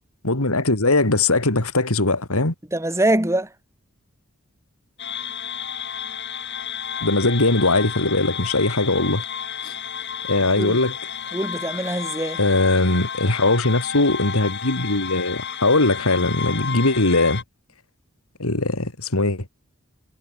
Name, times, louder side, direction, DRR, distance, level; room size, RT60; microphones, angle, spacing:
voice 1, 0.2-2.5 7.0-9.2 9.6-9.7 10.3-10.9 12.4-17.4 18.4-19.4, left 2 dB, 80° left, 3.2 m, -20 dB
voice 2, 2.7-3.5 10.5-10.8 11.3-12.4, right 1 dB, 15° right, 4.4 m, -23 dB
sound 1, 5.0-17.4, left 7 dB, 55° left, 5.8 m, -31 dB
head